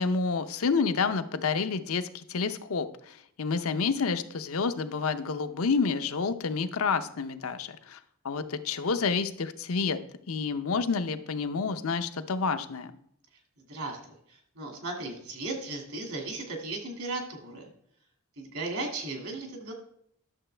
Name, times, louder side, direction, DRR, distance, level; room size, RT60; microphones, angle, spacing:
voice 1, 0.0-10.0 10.3-12.9, left 5 dB, 70° left, 10 dB, 0.6 m, -29 dB
voice 2, 13.6-17.7 18.4-19.7, right 2 dB, 70° right, 2 dB, 2.2 m, -36 dB
11.0 x 6.7 x 3.3 m, 0.68 s
head